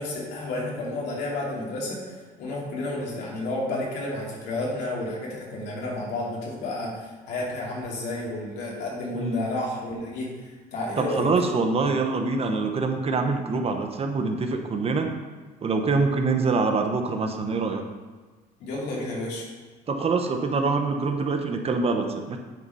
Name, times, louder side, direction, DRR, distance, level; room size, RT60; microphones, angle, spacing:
voice 1, 0.0-2.0 2.4-11.3 18.6-19.5, left 2 dB, 80° left, -4 dB, 2.6 m, -31 dB
voice 2, 11.0-15.1 15.6-17.8 19.9-22.4, right 4 dB, 35° right, 5 dB, 0.9 m, -25 dB
9.2 x 4.1 x 5.5 m, 1.3 s
cardioid pair, 110°, 17 cm